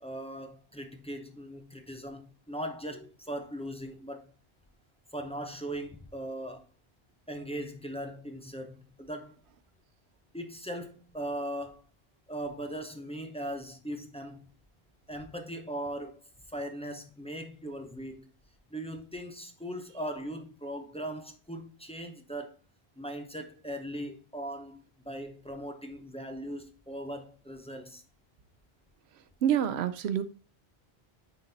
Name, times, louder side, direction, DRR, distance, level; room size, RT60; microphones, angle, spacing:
voice 1, 0.0-4.3 5.1-6.6 7.3-9.3 10.3-11.8 12.3-14.5 15.1-16.2 16.5-18.3 18.7-22.5 23.0-28.0, right 1 dB, 5° left, 0.6 m, -39 dB
voice 2, 29.4-30.2, right 9 dB, 85° right, 0.9 m, -27 dB
9.2 x 4.0 x 2.8 m
omnidirectional pair, 1.1 m